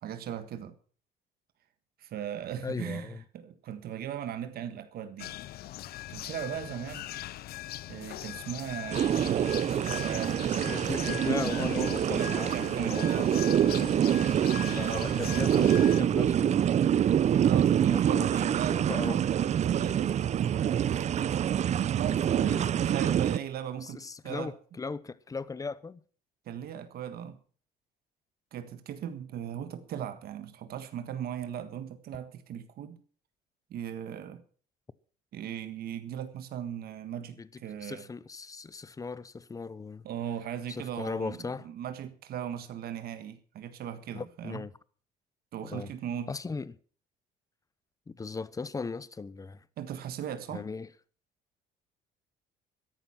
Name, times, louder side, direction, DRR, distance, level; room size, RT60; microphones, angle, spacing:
voice 1, 0.0-0.7 2.0-5.4 6.1-7.1 7.9-10.5 12.0-13.5 14.8-15.7 16.2-16.3 17.4-19.3 19.6-21.4 21.9-24.5 26.4-27.4 28.5-33.0 33.7-34.4 35.3-38.1 40.0-44.6 45.5-46.3 49.8-50.6, right 9 dB, 65° right, 1.6 m, -38 dB
voice 2, 2.6-3.2 10.6-12.5 12.8-14.2 14.7-16.6 17.3-17.4 17.8-18.3 18.8-19.2 22.4-22.7 23.8-26.0 37.4-37.5 37.8-40.0 40.7-41.7 44.1-44.7 45.6-45.9 46.3-46.8 48.1-49.6 50.5-50.9, left 4 dB, 20° left, 0.8 m, -38 dB
sound 1, 5.2-16.0, left 14 dB, 65° left, 0.6 m, -41 dB
sound 2, 8.9-23.4, right 10 dB, 45° right, 0.5 m, -26 dB
13.5 x 11.0 x 5.8 m
cardioid pair, 110°, 17 cm